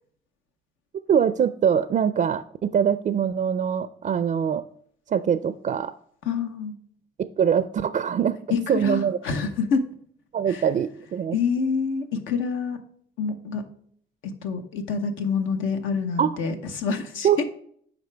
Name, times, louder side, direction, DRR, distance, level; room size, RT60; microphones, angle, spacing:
voice 1, 1.1-4.6 5.1-5.9 7.2-8.4 8.7-9.2 10.3-11.4 16.2-16.3 17.2-17.4, right 8 dB, 40° right, 13 dB, 0.4 m, -23 dB
voice 2, 6.2-6.7 8.5-9.8 10.5-10.6 11.3-12.8 13.2-13.6 14.2-17.4, left 5 dB, 85° left, 6 dB, 0.9 m, -27 dB
7.9 x 5.0 x 3.3 m, 0.63 s
cardioid pair, 90°, 20 cm